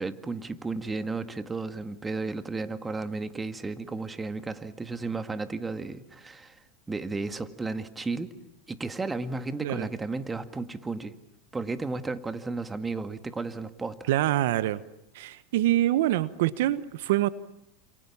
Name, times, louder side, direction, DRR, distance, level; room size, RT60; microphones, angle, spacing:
voice 1, 0.0-6.6 6.9-8.3 8.7-11.2 11.5-14.1, right 3 dB, 15° right, 11 dB, 2.0 m, -33 dB
voice 2, 14.1-14.8 15.1-17.3, right 14 dB, 75° right, 16 dB, 1.2 m, -25 dB
29.0 x 28.0 x 7.3 m, 0.77 s
supercardioid pair, 110°, 0 cm